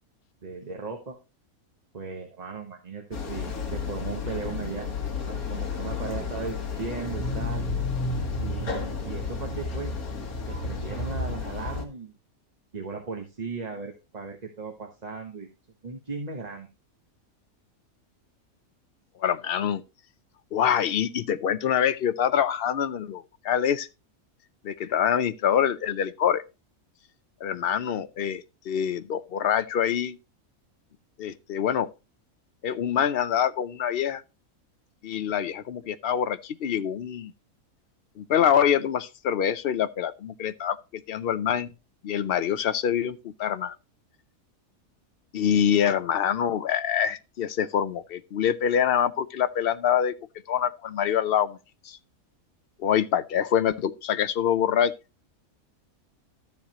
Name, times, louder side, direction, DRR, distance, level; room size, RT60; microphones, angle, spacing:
voice 1, 0.4-1.2 1.9-7.7 8.4-10.0 10.5-12.2 12.7-15.5 15.8-16.7, right 4 dB, 30° right, 1.1 m, -37 dB
sound 1, 3.1-11.8, left 4 dB, 85° left, 2.0 m, -31 dB
voice 2, 19.2-19.8 20.5-23.9 24.6-26.4 27.4-30.2 31.2-31.9 32.6-34.2 35.0-37.3 38.2-41.7 42.0-43.8 45.3-50.1 50.5-51.6 51.8-52.0 52.8-54.9, left 9 dB, 60° left, 0.6 m, -25 dB
13.0 x 7.2 x 2.9 m
omnidirectional pair, 1.5 m